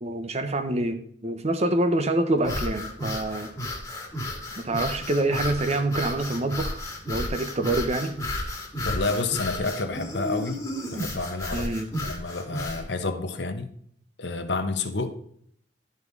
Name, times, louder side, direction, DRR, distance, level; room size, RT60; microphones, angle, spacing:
voice 1, 0.0-3.5 4.6-8.1 11.5-11.9, right 2 dB, 40° right, 0.9 m, -26 dB
sound 1, 2.4-12.9, left 1 dB, 20° left, 1.9 m, -33 dB
voice 2, 8.8-10.6 10.9-11.7 12.0-13.7 14.2-15.1, left 3 dB, 75° left, 1.0 m, -29 dB
12.0 x 5.5 x 4.0 m
head